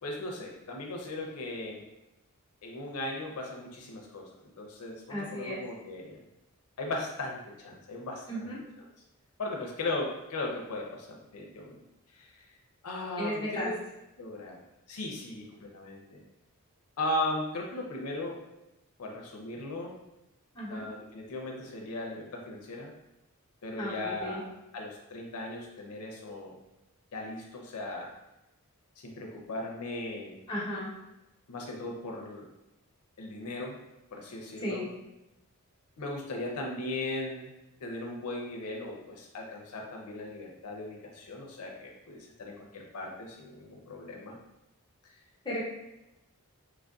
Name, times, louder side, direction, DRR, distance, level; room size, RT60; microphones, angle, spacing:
voice 1, 0.0-1.8 2.6-6.2 6.8-8.5 9.4-11.8 12.1-12.3 12.8-13.8 14.2-14.6 14.9-16.2 17.0-18.4 19.0-19.9 20.7-22.9 23.6-26.6 27.1-28.1 29.0-30.4 31.5-32.5 33.2-33.8 34.1-34.8 36.0-37.5 37.8-44.4, left 2 dB, 90° left, 0 dB, 0.5 m, -37 dB
voice 2, 5.1-5.6 8.3-8.6 13.2-13.7 20.5-20.8 23.8-24.4 30.5-30.9 34.6-34.8 45.4-45.7, left 1 dB, 20° left, -7 dB, 0.8 m, -34 dB
3.2 x 2.5 x 2.3 m, 0.94 s
head